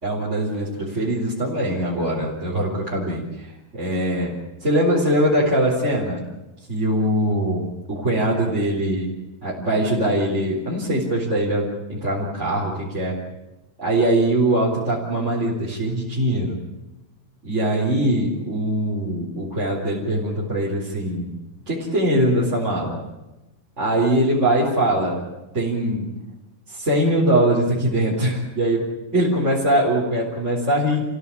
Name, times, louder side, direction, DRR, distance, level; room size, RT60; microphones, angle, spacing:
voice 1, 0.0-4.3 4.6-6.2 6.7-9.1 9.4-13.1 13.8-16.6 17.4-21.3 21.7-23.0 23.8-25.2 25.5-26.1 26.7-28.8 29.1-31.0, right 1 dB, 20° right, -5 dB, 4.3 m, -22 dB
29.5 x 16.5 x 8.7 m, 1.0 s
omnidirectional pair, 4.1 m